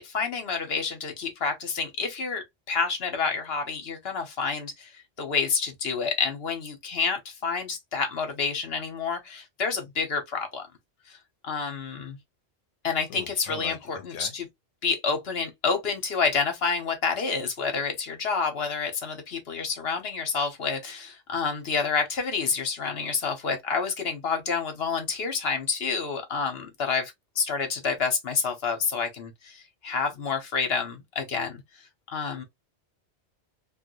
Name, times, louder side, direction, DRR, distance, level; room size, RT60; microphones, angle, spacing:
voice 1, 0.0-4.9 5.2-10.7 11.4-12.2 12.8-14.5 14.8-31.6 32.1-32.4, left 5 dB, 65° left, 1.1 m, -28 dB
voice 2, 13.1-14.3, left 7 dB, 85° left, 0.9 m, -41 dB
3.2 x 2.3 x 3.0 m
omnidirectional pair, 1.2 m